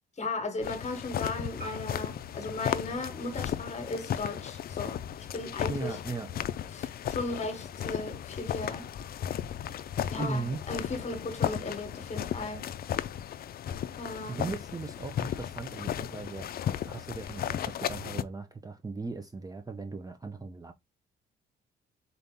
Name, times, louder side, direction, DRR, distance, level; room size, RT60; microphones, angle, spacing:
voice 1, 0.2-6.0 6.7-8.9 10.1-12.6 14.0-14.5, left 3 dB, 35° left, 1.2 m, -36 dB
sound 1, 0.6-18.2, left 10 dB, 50° left, 0.4 m, -35 dB
Marimba xylophone, 1.6-5.8, right 4 dB, 50° right, 2.1 m, -53 dB
voice 2, 5.7-6.3 10.2-10.6 14.3-16.5 16.9-20.7, right 3 dB, 20° right, 0.6 m, -37 dB
4.0 x 2.7 x 3.6 m
cardioid pair, 90°, 20 cm